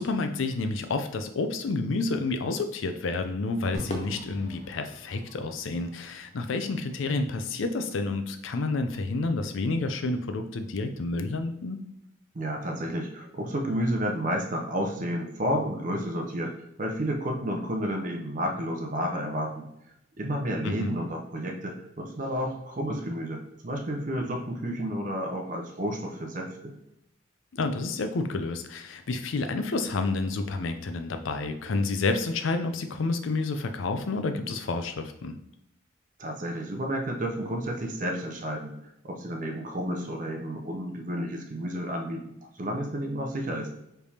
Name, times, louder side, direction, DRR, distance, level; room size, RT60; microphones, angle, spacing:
voice 1, 0.0-11.8 20.6-21.0 27.5-35.4, left 3 dB, 75° left, 8 dB, 0.5 m, -29 dB
Crowd / Fireworks, 3.7-8.2, equal, 35° left, 0.7 m, -43 dB
voice 2, 12.3-19.7 20.2-26.7 36.2-38.7 39.0-43.7, equal, 40° right, 2 dB, 0.6 m, -31 dB
5.0 x 3.4 x 2.8 m, 0.84 s
head